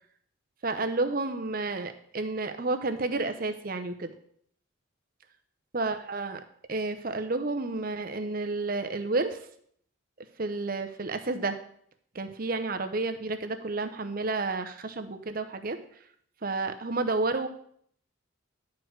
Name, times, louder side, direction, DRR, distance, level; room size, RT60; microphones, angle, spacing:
voice 1, 0.6-4.1 5.7-6.4 6.7-9.4 10.4-11.6 12.1-15.8 16.4-17.5, right 3 dB, 45° right, 8 dB, 0.8 m, -30 dB
11.0 x 4.7 x 6.4 m, 0.63 s
head